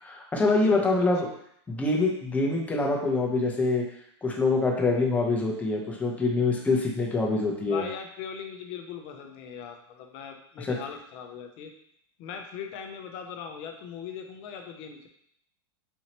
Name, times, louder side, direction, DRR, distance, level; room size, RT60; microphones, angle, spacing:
voice 1, 0.0-1.3 1.7-3.8 4.2-7.8 10.6-10.7, left 3 dB, 10° left, -1 dB, 0.7 m, -25 dB
voice 2, 0.7-1.1 7.6-11.7 12.2-15.1, left 7 dB, 45° left, 4 dB, 0.6 m, -40 dB
4.3 x 2.8 x 2.9 m, 0.70 s
supercardioid pair, 135°, 14 cm